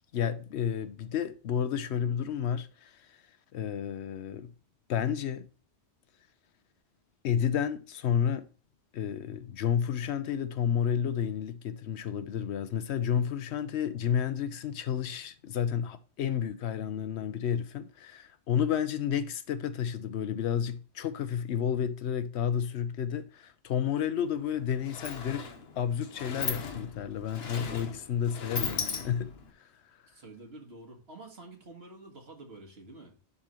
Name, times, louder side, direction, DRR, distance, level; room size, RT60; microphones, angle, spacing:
voice 1, 0.1-3.2 3.5-4.5 4.9-5.5 7.2-8.5 8.9-25.5 25.8-29.3 29.6-29.7, left 8 dB, 85° left, 1.0 m, -31 dB
Sliding door, 24.2-24.3 24.6-29.5, left 5 dB, 70° left, 1.2 m, -37 dB
voice 2, 30.1-33.2, right 2 dB, 70° right, 2.0 m, -48 dB
11.0 x 3.9 x 3.1 m
omnidirectional pair, 1.1 m